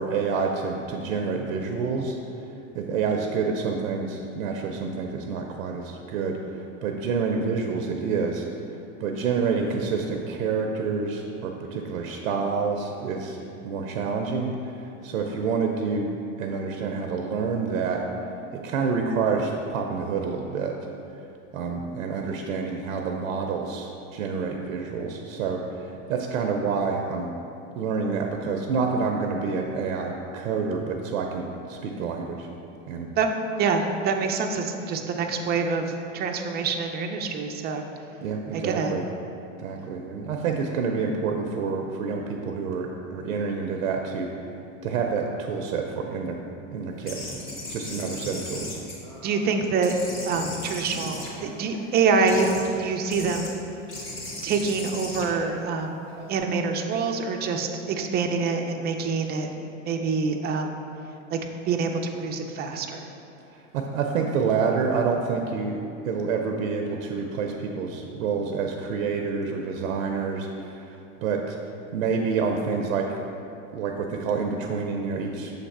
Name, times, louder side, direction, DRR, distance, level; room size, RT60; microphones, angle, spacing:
voice 1, 0.0-2.2 2.7-8.5 9.0-16.1 16.4-18.0 18.5-20.7 21.5-27.3 27.7-32.5 32.9-33.1 38.2-39.0 39.6-44.3 44.8-46.4 46.7-47.2 47.6-48.8 63.5-71.6 71.9-73.1 73.7-75.5, right 5 dB, 85° right, 3 dB, 0.6 m, -28 dB
voice 2, 33.2-37.8 38.5-38.9 49.2-50.0 50.2-53.6 54.4-56.0 56.3-59.5 59.9-60.8 61.3-61.4 61.7-61.9 62.2-63.0, right 4 dB, 25° right, 4 dB, 0.4 m, -26 dB
sound 1, 47.0-49.5 49.8-51.8 52.2-52.7 53.1-53.5 53.9-56.4, left 1 dB, 30° left, 1.4 m, -37 dB
6.9 x 3.3 x 4.1 m, 2.7 s
hypercardioid pair, 110°, 40 cm